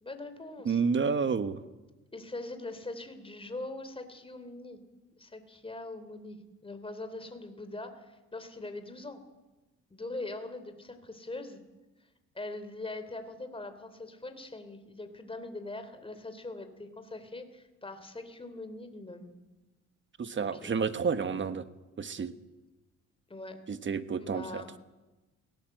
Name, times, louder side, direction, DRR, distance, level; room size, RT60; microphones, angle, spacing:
voice 1, 0.0-0.8 2.1-4.8 5.1-9.2 9.9-11.6 12.3-19.4 20.4-20.7 23.3-23.6 24.2-24.7, left 2 dB, 20° left, 9 dB, 3.2 m, -42 dB
voice 2, 0.6-1.6 20.2-21.6 22.0-22.3 23.7-24.8, right 5 dB, 40° right, 11 dB, 1.4 m, -30 dB
22.0 x 18.0 x 7.8 m, 1.1 s
cardioid pair, 90°, 30 cm